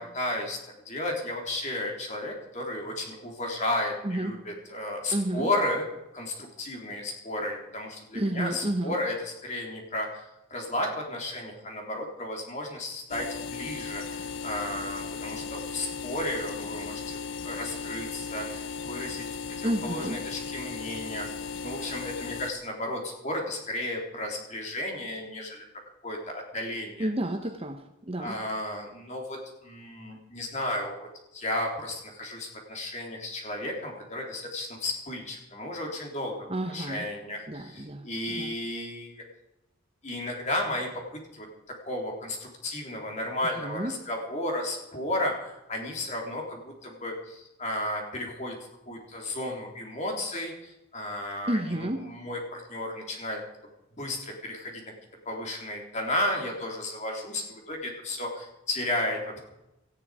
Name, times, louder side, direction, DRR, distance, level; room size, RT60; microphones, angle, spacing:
voice 1, 0.0-5.9 6.1-19.3 19.6-25.6 26.0-27.1 28.2-39.2 40.0-41.0 41.3-41.5 41.8-48.6 48.9-53.4 54.0-54.8 55.3-59.4, left 1 dB, 35° left, 1 dB, 3.5 m, -33 dB
voice 2, 5.1-5.5 8.1-8.9 19.6-20.2 27.0-28.4 36.5-37.1 37.5-38.5 43.6-43.9 51.5-52.0, right 1 dB, 25° right, 6 dB, 1.0 m, -30 dB
sound 1, 13.1-22.5, left 5 dB, 60° left, 0.8 m, -36 dB
18.0 x 13.5 x 5.0 m, 0.91 s
head